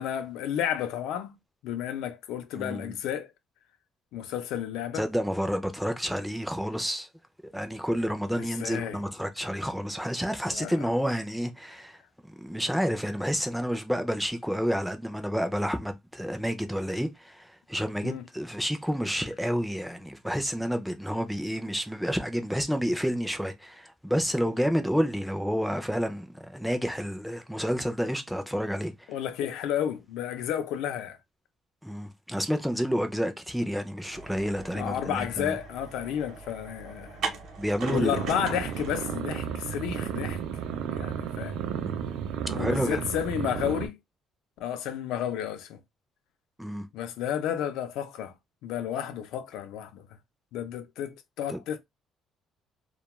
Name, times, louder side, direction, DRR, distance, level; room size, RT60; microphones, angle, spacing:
voice 1, 0.0-1.3 1.6-3.3 4.1-5.0 8.4-9.0 10.5-10.8 18.0-18.2 29.1-31.2 34.7-37.2 37.9-40.4 40.9-41.6 42.5-44.0 44.6-45.8 46.9-48.3 48.6-50.1 50.5-51.8, left 9 dB, 85° left, 0.4 m, -32 dB
voice 2, 2.5-2.9 4.9-7.1 7.5-12.0 12.4-28.9 31.8-35.6 37.2-38.2 41.6-41.9 42.5-43.0 46.6-46.9 51.5-51.6, equal, ahead, 0.3 m, -30 dB
sound 1, 34.1-39.2, right 5 dB, 55° right, 0.7 m, -40 dB
sound 2, 37.8-43.9, right 8 dB, 75° right, 0.4 m, -33 dB
2.2 x 2.2 x 2.9 m
cardioid pair, 175°, 0 cm